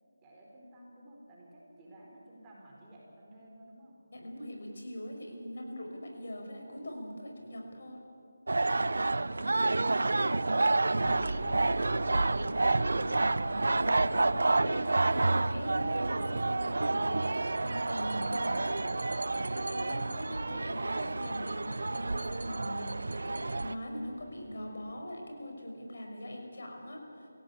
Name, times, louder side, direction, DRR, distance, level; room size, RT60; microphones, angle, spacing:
voice 1, 0.2-4.0, equal, 15° right, -4 dB, 4.3 m, -52 dB
voice 2, 4.1-8.0 13.8-18.9 19.5-27.3, equal, 65° left, 1 dB, 6.1 m, -42 dB
sound 1, 8.5-23.7, right 2 dB, 75° right, 0.8 m, -29 dB
sound 2, 11.0-25.0, right 1 dB, 10° left, 3.4 m, -49 dB
26.0 x 16.5 x 8.6 m, 2.5 s
figure-of-eight pair, 170°, 0 cm